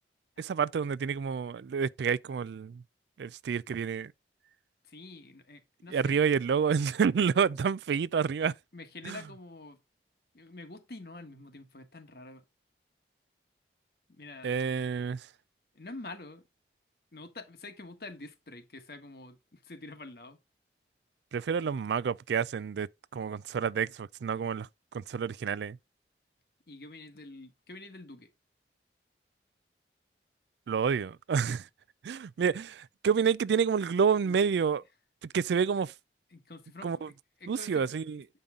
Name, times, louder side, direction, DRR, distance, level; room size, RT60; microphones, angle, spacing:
voice 1, 0.4-2.8 3.2-4.1 5.9-8.5 9.0-9.2 14.4-15.2 21.3-24.7 24.9-25.8 30.7-31.7 32.0-34.8 35.3-35.9 36.8-37.1 37.5-38.2, right 6 dB, 75° right, 0.3 m, -29 dB
voice 2, 4.8-6.2 8.7-9.8 10.3-12.4 14.1-14.5 15.7-16.4 17.1-20.4 26.7-28.3 34.2-34.4 36.3-37.0 37.4-38.0, left 2 dB, 60° left, 1.3 m, -47 dB
8.7 x 5.4 x 3.7 m
head